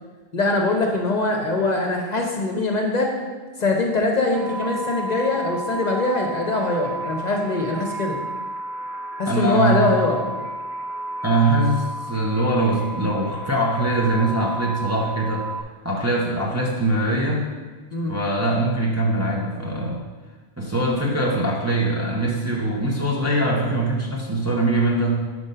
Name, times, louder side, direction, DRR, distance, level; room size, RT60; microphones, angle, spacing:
voice 1, 0.3-3.1 3.6-8.2 9.2-10.2 17.9-18.1, left 2 dB, 45° left, 1 dB, 0.8 m, -22 dB
sound 1, 4.3-15.6, right 2 dB, 85° right, 0.9 m, -32 dB
voice 2, 9.3-9.9 11.2-15.5 15.8-17.5 18.1-20.0 20.6-25.3, right 1 dB, 20° right, -3 dB, 0.6 m, -22 dB
5.2 x 4.6 x 5.4 m, 1.3 s
omnidirectional pair, 1.0 m